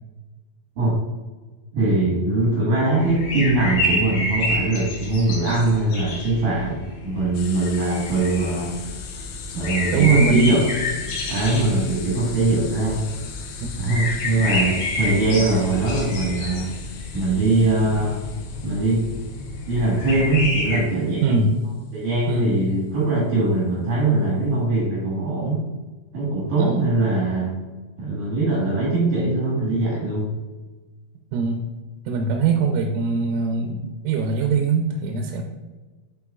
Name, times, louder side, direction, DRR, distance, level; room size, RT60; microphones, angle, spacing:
voice 1, 1.7-8.8 9.5-10.6 11.3-13.1 13.8-16.7 17.1-18.2 18.6-19.1 19.7-21.5 21.9-25.6 26.1-27.6 28.0-30.3, right 2 dB, 65° right, -5 dB, 2.1 m, -21 dB
sound 1, 3.0-20.8, left 2 dB, 65° left, 2.5 m, -29 dB
sound 2, 7.3-21.9, left 6 dB, 85° left, 3.4 m, -40 dB
voice 2, 9.9-10.6 13.6-13.7 21.2-21.5 22.3-22.6 26.6-26.9 31.3-31.6 32.1-35.5, right 5 dB, 80° right, 2 dB, 3.1 m, -22 dB
10.5 x 4.4 x 2.4 m, 1.3 s
omnidirectional pair, 5.8 m